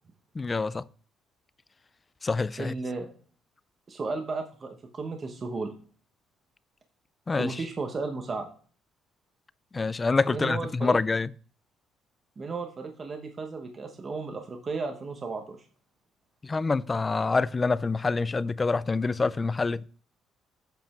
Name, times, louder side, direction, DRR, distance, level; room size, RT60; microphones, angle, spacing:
voice 1, 0.4-0.8 2.2-2.7 7.3-7.5 9.7-11.3 16.5-19.8, left 4 dB, 20° left, 0.3 m, -26 dB
voice 2, 2.6-3.1 3.9-5.7 7.4-8.5 10.3-11.0 12.4-15.6, right 3 dB, 30° right, 1.0 m, -34 dB
7.9 x 5.3 x 4.3 m
cardioid pair, 125°, 0 cm